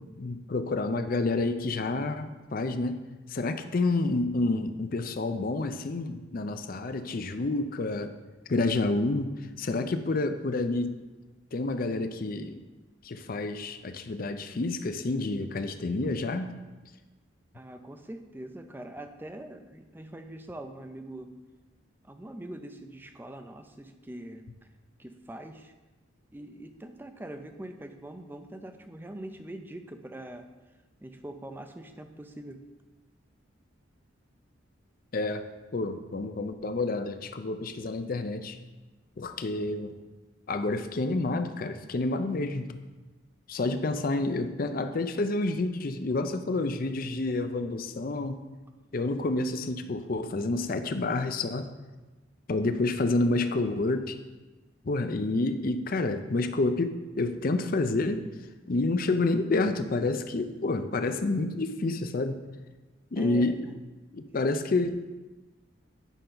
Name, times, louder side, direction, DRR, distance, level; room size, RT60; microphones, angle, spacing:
voice 1, 0.0-3.0 3.3-8.1 8.5-9.3 9.6-10.9 11.5-12.6 13.0-16.5 35.1-35.4 35.7-38.6 39.2-39.9 40.5-42.8 43.5-48.4 48.9-51.7 52.5-54.2 54.8-58.3 58.7-62.4 63.1-63.7 64.1-65.0, left 2 dB, 45° left, 8 dB, 0.5 m, -29 dB
voice 2, 17.5-21.3 22.0-24.4 25.0-25.7 26.3-30.5 31.0-32.6 63.2-63.8 64.3-64.4, right 1 dB, 10° right, 7 dB, 0.4 m, -43 dB
9.1 x 5.5 x 3.8 m, 1.2 s
head